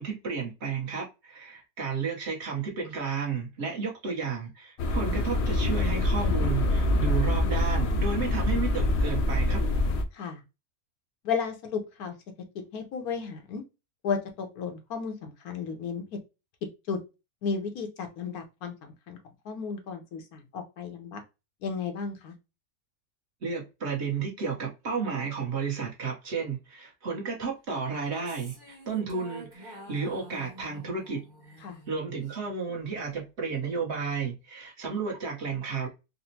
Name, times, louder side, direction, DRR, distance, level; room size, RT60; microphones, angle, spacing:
voice 1, 0.0-9.6 23.4-31.6 31.9-35.9, right 5 dB, 50° right, 1.2 m, -32 dB
sound 1, 4.8-10.0, left 1 dB, 65° left, 0.7 m, -25 dB
voice 2, 11.2-12.1 12.7-13.6 14.0-16.0 16.9-17.0 17.4-19.2 19.4-21.2 21.6-22.3 31.6-31.8, left 5 dB, 90° left, 1.3 m, -33 dB
sound 2, 28.0-32.5, right 1 dB, 20° right, 1.0 m, -48 dB
4.0 x 2.1 x 2.7 m
omnidirectional pair, 1.5 m